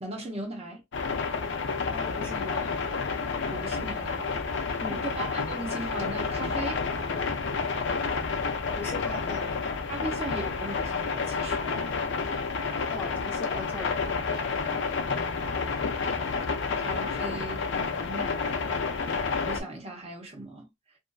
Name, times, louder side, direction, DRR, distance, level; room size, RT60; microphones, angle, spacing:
voice 1, 0.0-0.8 3.5-6.9 9.9-12.3 15.5-15.6 16.7-18.8 19.5-20.7, right 2 dB, 30° right, 0.8 m, -38 dB
sound 1, 0.9-19.6, left 4 dB, 60° left, 0.5 m, -30 dB
voice 2, 1.9-2.7 4.8-5.1 8.5-9.5 12.7-14.0, left 3 dB, 10° left, 0.7 m, -39 dB
2.6 x 2.5 x 2.3 m
head